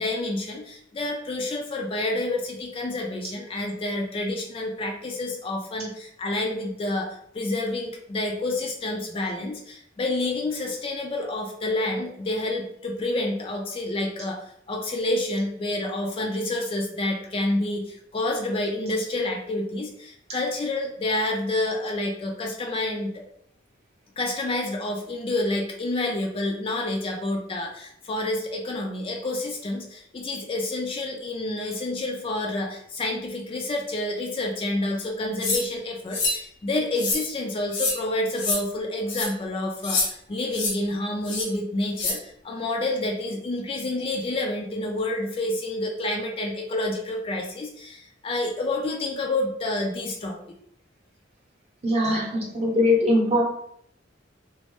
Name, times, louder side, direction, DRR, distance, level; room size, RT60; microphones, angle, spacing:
voice 1, 0.0-7.1 7.3-14.4 14.7-23.2 24.2-50.4, left 2 dB, 30° left, 2 dB, 0.3 m, -28 dB
sound 1, 35.4-35.6 36.1-36.4 37.0-37.2 37.7-38.0 38.4-38.6 39.1-39.3 39.8-40.1 40.5-40.7 41.3-41.5 42.0-42.1, left 3 dB, 65° left, 0.8 m, -25 dB
voice 2, 51.8-53.4, left 1 dB, 35° right, -2 dB, 0.7 m, -21 dB
3.0 x 2.0 x 3.0 m, 0.69 s
head